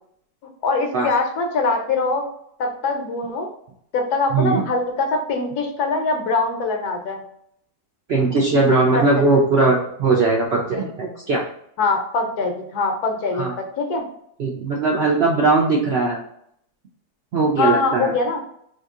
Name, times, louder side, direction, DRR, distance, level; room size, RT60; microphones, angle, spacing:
voice 1, 0.6-2.3 2.6-3.5 3.9-7.2 8.9-9.1 11.8-14.0 17.6-18.4, left 3 dB, 80° left, 3 dB, 1.2 m, -23 dB
voice 2, 4.3-4.6 8.1-11.4 13.3-13.5 14.4-16.2 17.3-18.1, right 3 dB, 70° right, -3 dB, 0.6 m, -19 dB
2.8 x 2.7 x 3.5 m, 0.70 s
omnidirectional pair, 1.6 m